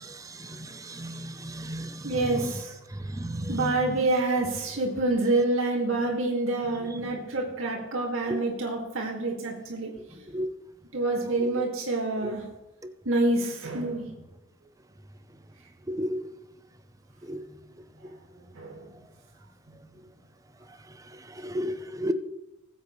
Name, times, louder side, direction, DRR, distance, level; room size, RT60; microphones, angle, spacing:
voice 1, 1.5-1.9 3.2-3.3 10.3-10.5 16.0-16.2 17.3-17.4 21.5-21.7 22.0-22.1, equal, 15° right, 10 dB, 0.6 m, -30 dB
voice 2, 2.0-2.7 3.5-9.9 10.9-12.4 13.1-14.1 18.6-18.8, right 2 dB, 85° right, -1 dB, 2.3 m, -27 dB
20.0 x 8.2 x 3.2 m, 0.97 s
head